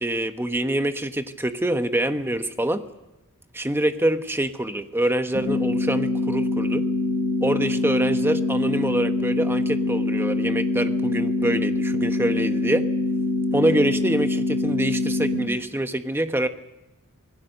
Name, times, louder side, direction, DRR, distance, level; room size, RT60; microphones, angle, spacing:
voice 1, 0.0-2.8 3.5-6.8 7.4-12.9 13.5-16.5, right 1 dB, 10° right, 8 dB, 1.2 m, -25 dB
sound 1, 5.3-15.4, left 3 dB, 80° right, 4.9 m, -24 dB
26.0 x 19.0 x 6.7 m, 1.0 s
head